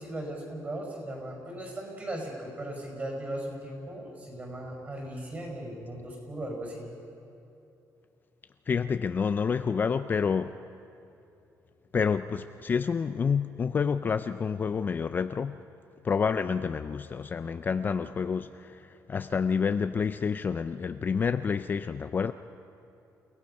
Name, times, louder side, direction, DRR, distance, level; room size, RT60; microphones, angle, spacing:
voice 1, 0.0-6.9, right 1 dB, 25° right, 1 dB, 5.4 m, -37 dB
voice 2, 8.7-10.5 11.9-15.6 16.0-22.3, left 6 dB, 30° left, 10 dB, 0.4 m, -28 dB
29.5 x 17.0 x 5.5 m, 2.8 s
cardioid pair, 155°, 7 cm